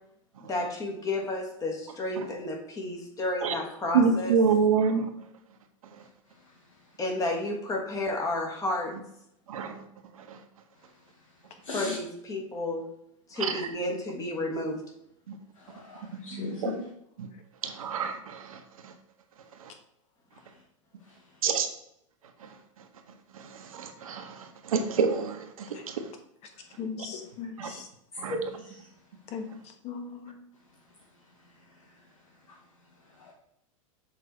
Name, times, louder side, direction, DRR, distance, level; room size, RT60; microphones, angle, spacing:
voice 1, 0.4-4.3 7.0-8.9 11.7-12.8 13.3-14.8, left 2 dB, 20° left, 1 dB, 1.5 m, -31 dB
voice 2, 3.9-5.0 9.5-9.7 10.3-10.4 13.4-13.5 16.3-16.7 17.2-17.3 17.6-18.6 21.4-21.7 23.7-24.4 24.7-25.9 27.6-27.7 28.2-28.4, right 6 dB, 85° right, 5 dB, 1.1 m, -26 dB
voice 3, 11.6-12.0 15.7-16.8 27.6-27.8 28.3-28.4 33.3-33.4, left 4 dB, 90° left, -4 dB, 1.6 m, -36 dB
voice 4, 26.8-27.9 29.3-30.4, left 6 dB, 40° left, 5 dB, 1.2 m, -39 dB
6.7 x 3.8 x 4.4 m, 0.77 s
hypercardioid pair, 125°, 17 cm